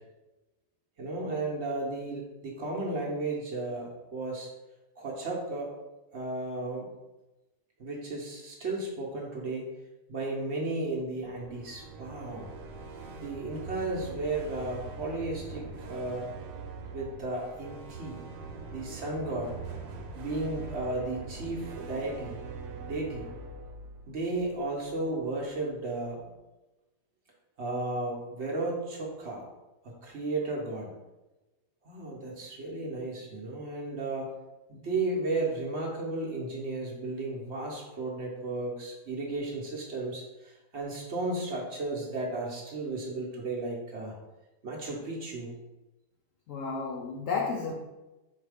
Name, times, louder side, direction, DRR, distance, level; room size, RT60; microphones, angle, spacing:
voice 1, 1.0-4.5 5.0-5.7 6.1-6.9 7.8-9.7 10.1-12.5 13.2-16.3 16.9-18.2 18.7-19.5 20.1-22.4 22.9-23.3 24.1-26.2 27.6-29.5 30.0-30.9 31.8-34.3 34.7-44.1 44.6-45.5, right 2 dB, 55° right, -2 dB, 0.8 m, -34 dB
sound 1, 11.2-25.2, right 3 dB, 75° right, 1.2 m, -43 dB
voice 2, 46.5-47.7, left 4 dB, 75° left, 0 dB, 0.7 m, -32 dB
4.0 x 2.7 x 4.8 m, 1.1 s
omnidirectional pair, 1.9 m